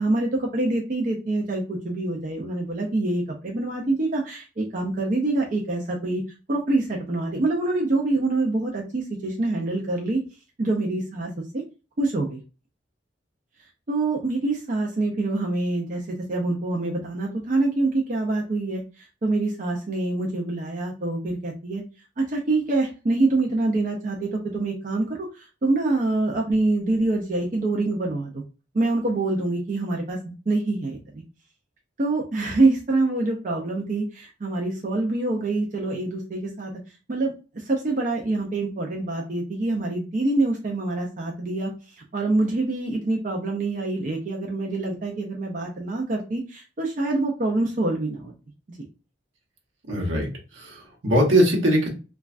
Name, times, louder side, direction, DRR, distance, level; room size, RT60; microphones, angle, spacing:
voice 1, 0.0-6.2 6.5-10.2 10.6-11.6 12.0-12.4 13.9-21.8 22.2-28.4 28.7-30.2 30.5-31.2 32.0-36.7 37.1-48.3, right 2 dB, 40° right, 0 dB, 0.4 m, -25 dB
voice 2, 49.9-50.3 50.5-51.9, equal, 75° right, 0 dB, 0.9 m, -21 dB
3.1 x 2.3 x 2.4 m, 0.33 s
head